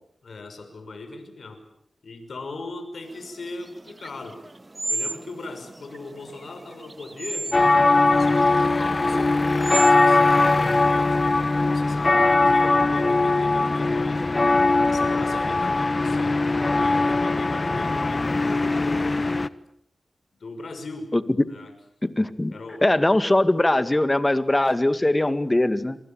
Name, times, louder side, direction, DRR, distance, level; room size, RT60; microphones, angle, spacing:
voice 1, 0.2-1.6 2.0-4.4 4.9-14.3 14.9-16.4 16.7-19.3 20.4-21.1 21.5-21.7 22.5-22.9 24.6-24.7, left 3 dB, 75° left, 7 dB, 6.2 m, -39 dB
sound 1, 3.1-9.9, right 2 dB, 30° right, 1.5 m, -35 dB
sound 2, 7.5-19.5, left 3 dB, 45° left, 1.2 m, -20 dB
voice 2, 22.0-22.5 22.8-26.0, left 1 dB, 25° left, 12 dB, 2.1 m, -21 dB
27.0 x 24.0 x 8.9 m, 0.72 s
cardioid pair, 55°, 0 cm